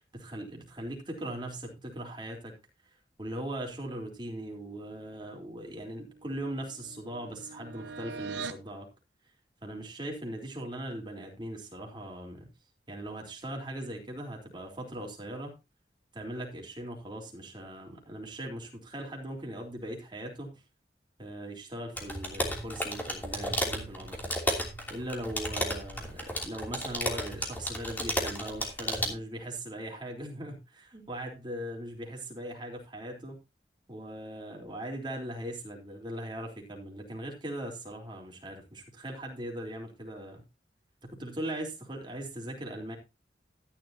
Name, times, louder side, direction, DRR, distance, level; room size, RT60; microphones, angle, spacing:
voice 1, 0.1-2.5 3.2-8.9 9.6-12.5 12.9-15.5 16.1-20.5 21.2-24.2 24.9-33.4 33.9-40.4 41.0-43.0, right 1 dB, 25° right, 1 dB, 3.8 m, -39 dB
sound 1, 5.5-8.7, right 4 dB, 80° right, 1.0 m, -43 dB
sound 2, 22.0-29.1, equal, 10° left, 2.9 m, -33 dB
13.5 x 11.0 x 2.8 m, 0.26 s
head